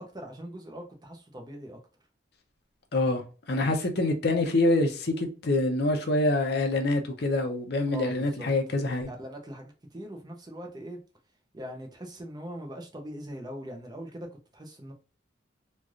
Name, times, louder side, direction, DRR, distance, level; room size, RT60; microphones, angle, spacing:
voice 1, 0.0-1.8 3.6-3.7 7.9-8.5 9.1-11.0 11.5-14.3 14.5-14.9, equal, 20° right, 0.6 m, -41 dB
voice 2, 2.9-3.2 3.5-9.1, left 2 dB, 55° left, 0.6 m, -26 dB
3.1 x 2.4 x 2.4 m
head